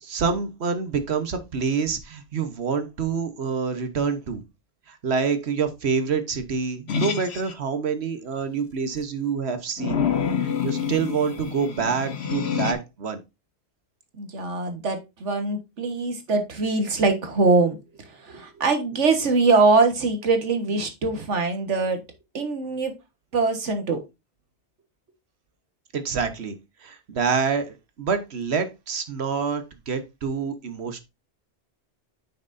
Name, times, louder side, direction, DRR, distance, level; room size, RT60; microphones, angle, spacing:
voice 1, 0.0-4.4 4.9-10.0 10.4-13.2 25.9-26.6 26.8-31.0, right 5 dB, 65° right, 9 dB, 1.3 m, -27 dB
sound 1, 6.9-7.5 9.8-12.7, left 7 dB, 65° left, 1.1 m, -27 dB
voice 2, 14.2-17.8 18.0-22.0 22.3-22.9 23.3-24.0, right 3 dB, 90° right, 6 dB, 1.8 m, -22 dB
8.9 x 6.0 x 2.6 m, 0.24 s
omnidirectional pair, 1.2 m